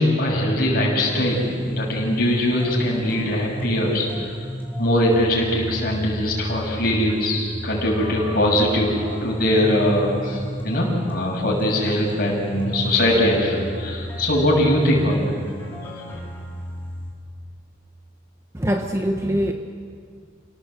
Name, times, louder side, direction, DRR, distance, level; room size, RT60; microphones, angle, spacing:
voice 1, 0.0-4.2 4.8-15.3 15.8-16.2, left 1 dB, 50° left, -2 dB, 6.5 m, -21 dB
sound 1, 1.1-17.1, equal, 10° left, 3.8 m, -33 dB
voice 2, 18.5-19.5, equal, 15° right, 3 dB, 1.0 m, -23 dB
28.0 x 18.0 x 7.9 m, 2.1 s
head